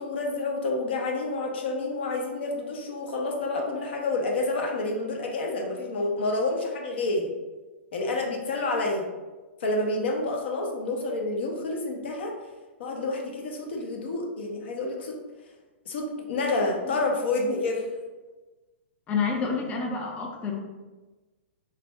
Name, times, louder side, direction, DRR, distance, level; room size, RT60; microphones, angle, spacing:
voice 1, 0.0-7.3 7.9-9.0 9.6-12.3 12.8-15.2 15.9-17.9, left 2 dB, 65° left, 1 dB, 0.7 m, -29 dB
voice 2, 19.1-20.6, left 5 dB, 20° left, 0 dB, 0.4 m, -28 dB
3.4 x 2.5 x 3.2 m, 1.2 s
figure-of-eight pair, 110°, 6 cm